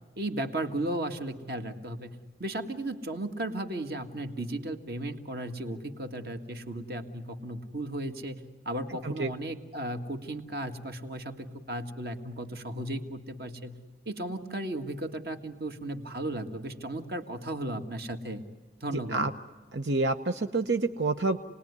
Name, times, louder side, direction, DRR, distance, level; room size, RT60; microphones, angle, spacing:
voice 1, 0.2-13.8 14.1-18.4 18.8-19.2, right 1 dB, 60° right, 6 dB, 1.9 m, -35 dB
voice 2, 19.7-21.4, right 3 dB, 90° right, 7 dB, 0.9 m, -28 dB
29.0 x 20.0 x 9.7 m, 1.4 s
head